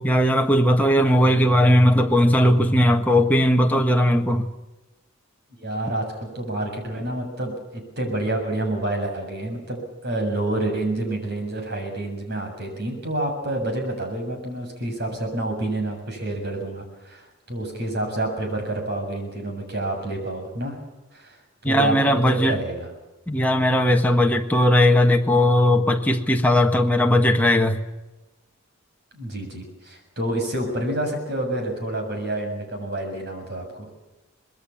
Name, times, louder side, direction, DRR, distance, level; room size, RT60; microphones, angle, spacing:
voice 1, 0.0-4.5 21.6-22.6 23.3-27.8, left 1 dB, 10° left, 1.6 m, -18 dB
voice 2, 5.6-20.8 21.1-21.4 21.6-22.9 29.1-33.9, right 1 dB, 50° right, 7.4 m, -28 dB
25.0 x 21.0 x 7.2 m
head